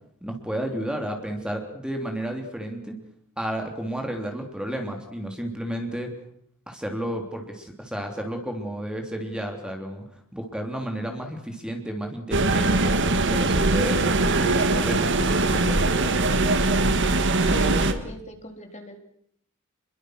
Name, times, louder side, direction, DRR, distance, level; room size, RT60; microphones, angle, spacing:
voice 1, 0.2-2.9 3.4-6.1 6.7-12.9 13.3-16.1, right 1 dB, 5° right, 3 dB, 3.1 m, -32 dB
sound 1, 12.3-17.9, right 2 dB, 60° right, 2.0 m, -21 dB
voice 2, 17.4-19.0, left 1 dB, 35° left, 4 dB, 3.8 m, -39 dB
28.0 x 22.5 x 6.4 m, 0.68 s
head